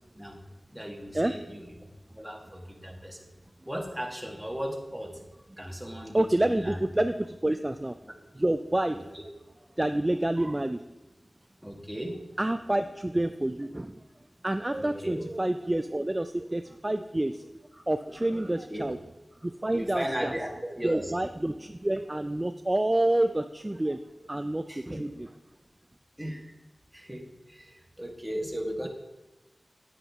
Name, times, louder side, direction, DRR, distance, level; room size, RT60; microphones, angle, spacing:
voice 1, 0.7-1.6 2.1-3.2 3.6-5.2 5.6-6.8 8.9-9.0 11.6-12.2 14.7-15.2 17.7-17.8 18.4-18.9 19.7-21.1 24.7-25.0 26.2-26.5 26.9-28.9, equal, 5° right, 1 dB, 1.7 m, -36 dB
voice 2, 6.1-8.0 8.3-9.0 9.8-10.9 12.4-14.0 14.4-17.5 17.9-19.0 19.4-20.3 20.8-24.0 24.3-25.3, right 1 dB, 25° right, 9 dB, 0.4 m, -28 dB
9.4 x 8.9 x 3.5 m, 1.1 s
wide cardioid pair, 70°, 0 cm